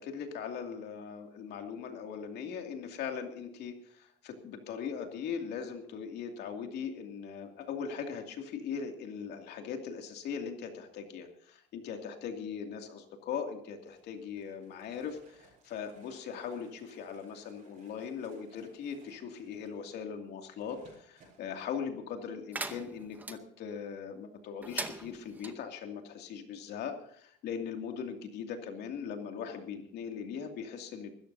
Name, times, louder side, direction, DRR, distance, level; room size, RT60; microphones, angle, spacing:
voice 1, 0.0-31.1, left 7 dB, 55° left, 4 dB, 2.5 m, -40 dB
sound 1, 13.9-21.4, right 4 dB, 35° right, 6.9 m, -63 dB
sound 2, 22.5-23.4 24.6-25.5, right 2 dB, 10° right, 0.8 m, -40 dB
25.0 x 14.0 x 2.7 m, 0.65 s
cardioid pair, 170°, 21 cm